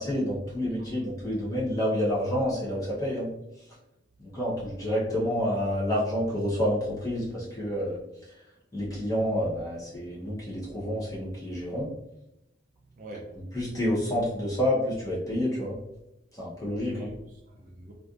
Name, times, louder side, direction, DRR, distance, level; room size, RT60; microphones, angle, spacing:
voice 1, 0.0-3.3 4.2-8.0 8.7-11.9 13.5-15.8 16.4-17.0, equal, 20° left, -7 dB, 1.1 m, -28 dB
voice 2, 12.9-13.5 16.8-17.9, right 1 dB, 40° right, -1 dB, 0.5 m, -44 dB
3.2 x 2.5 x 2.6 m, 0.88 s
head